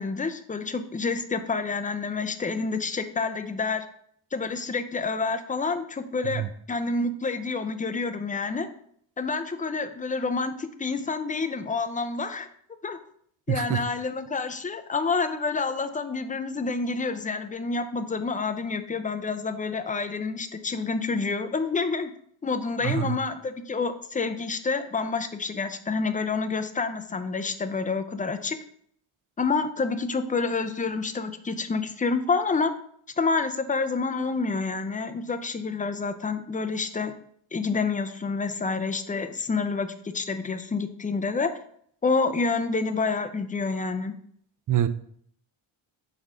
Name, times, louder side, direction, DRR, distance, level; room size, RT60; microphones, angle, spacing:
voice 1, 0.0-3.8 4.3-8.7 9.2-12.5 12.8-13.0 13.5-22.1 22.4-28.6 29.4-32.7 33.2-37.1 37.5-41.5 42.0-44.1, left 4 dB, 15° left, 10 dB, 0.4 m, -28 dB
voice 2, 13.5-13.8 22.8-23.2 44.7-44.9, right 11 dB, 40° right, 12 dB, 0.4 m, -25 dB
5.5 x 4.7 x 3.7 m, 0.64 s
cardioid pair, 105°, 50 cm